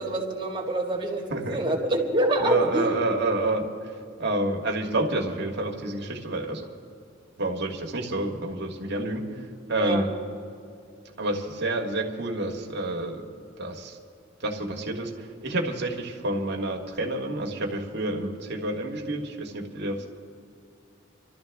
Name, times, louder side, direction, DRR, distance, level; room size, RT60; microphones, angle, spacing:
voice 1, 0.0-3.0 9.8-10.1, right 1 dB, 25° right, -1 dB, 2.0 m, -26 dB
voice 2, 2.4-6.7 7.4-9.4 9.7-10.1 11.2-13.3 13.6-14.0 14.4-20.0, right 2 dB, 60° right, 1 dB, 1.6 m, -29 dB
25.5 x 13.0 x 3.5 m, 2.5 s
head